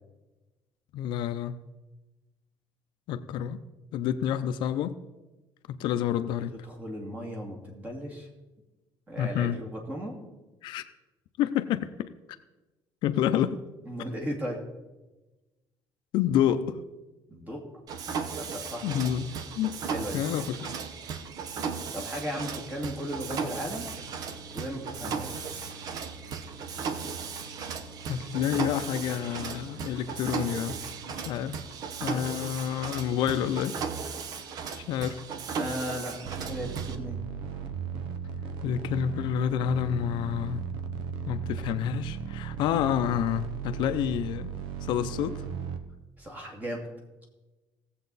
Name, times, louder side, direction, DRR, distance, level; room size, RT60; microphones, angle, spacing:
voice 1, 0.9-1.6 3.1-3.6 3.9-5.0 5.7-6.6 9.2-9.6 10.6-10.8 11.4-12.1 13.0-13.6 16.1-16.8 18.8-19.8 20.1-20.7 28.1-30.8 31.3-31.6 32.0-33.8 34.8-35.2 38.6-40.7 41.3-44.5 44.8-45.4, left 10 dB, 70° left, 0.6 m, -28 dB
voice 2, 6.5-8.3 9.1-10.2 13.9-14.6 17.3-17.7 18.4-18.9 19.9-20.2 21.9-23.9 24.5-25.5 35.6-37.2 46.2-46.9, equal, 20° right, 2.3 m, -36 dB
Mechanisms, 17.9-36.9, right 6 dB, 50° right, 0.9 m, -36 dB
sound 1, 36.2-45.8, right 7 dB, 85° right, 1.0 m, -36 dB
18.0 x 7.6 x 4.1 m
cardioid pair, 160°, 8 cm